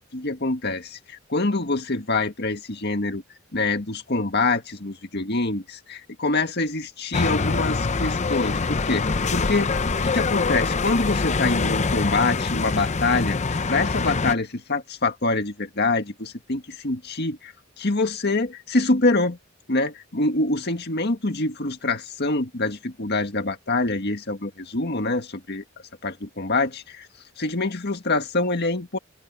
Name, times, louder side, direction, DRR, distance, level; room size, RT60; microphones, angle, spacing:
voice 1, 0.1-3.2 3.5-9.7 10.0-19.4 19.7-25.6 26.0-27.1 27.4-29.0, left 3 dB, 55° left, 1.9 m, -25 dB
sound 1, 7.1-14.3, left 4 dB, 35° left, 0.7 m, -24 dB
open air
head